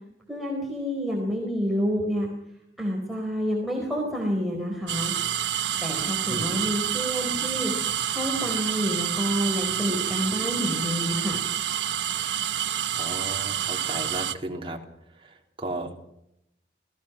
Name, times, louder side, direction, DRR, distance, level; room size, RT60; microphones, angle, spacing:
voice 1, 0.3-2.3 2.8-5.1 5.8-7.7 8.1-11.4, equal, ahead, -2 dB, 4.2 m, -28 dB
sound 1, 4.9-14.4, right 10 dB, 85° right, 1.1 m, -28 dB
voice 2, 13.0-14.8 15.2-15.9, right 1 dB, 30° right, 1 dB, 3.4 m, -34 dB
29.0 x 18.5 x 6.1 m, 0.81 s
head